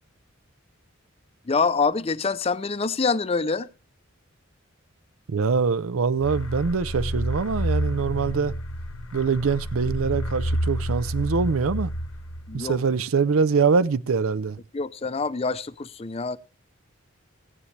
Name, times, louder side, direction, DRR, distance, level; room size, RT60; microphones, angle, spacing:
voice 1, 1.5-3.7 12.5-12.8 14.7-16.4, left 4 dB, 30° left, 0.5 m, -25 dB
voice 2, 5.3-8.5 9.1-11.9 12.5-14.6, right 5 dB, 85° right, 0.5 m, -24 dB
sound 1, 6.2-12.7, equal, 85° left, 1.1 m, -29 dB
15.5 x 9.9 x 3.2 m
head